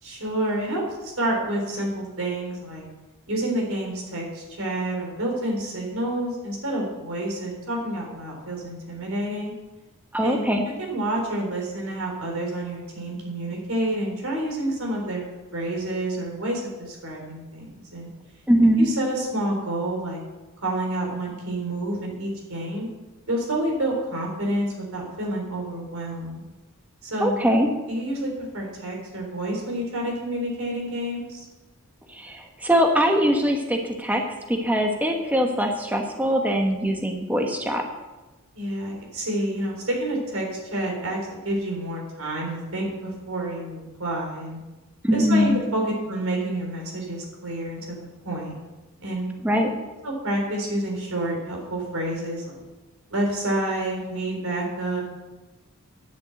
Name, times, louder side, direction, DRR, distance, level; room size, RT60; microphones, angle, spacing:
voice 1, 0.0-2.8 3.3-9.5 10.2-10.5 10.8-15.2 15.5-18.1 18.8-20.2 20.6-22.9 23.3-26.4 27.0-27.3 27.9-31.5 38.5-40.5 40.7-41.2 41.4-44.6 45.1-45.8 46.1-48.5 49.0-49.3 50.0-52.5 53.1-55.0, right 1 dB, 75° right, 0 dB, 3.8 m, -29 dB
voice 2, 10.1-10.6 18.5-18.9 27.2-27.7 32.1-34.2 34.5-37.8 45.0-45.6 49.4-49.7, equal, 5° right, 2 dB, 1.0 m, -22 dB
10.5 x 7.0 x 7.9 m, 1.1 s
head